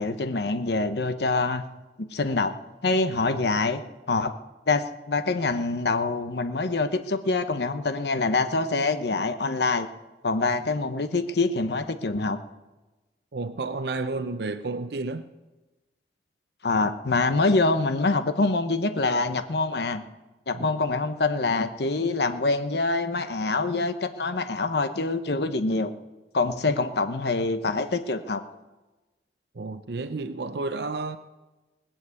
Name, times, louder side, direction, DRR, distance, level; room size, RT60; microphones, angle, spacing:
voice 1, 0.0-1.6 2.0-2.5 2.8-3.8 4.1-4.3 4.7-9.9 10.2-12.4 16.6-20.0 20.5-25.9 26.3-28.4, left 3 dB, 70° left, 9 dB, 0.9 m, -25 dB
voice 2, 13.3-15.3 20.5-20.7 29.5-31.2, right 3 dB, 70° right, 9 dB, 0.6 m, -31 dB
20.0 x 7.3 x 8.2 m, 1.1 s
head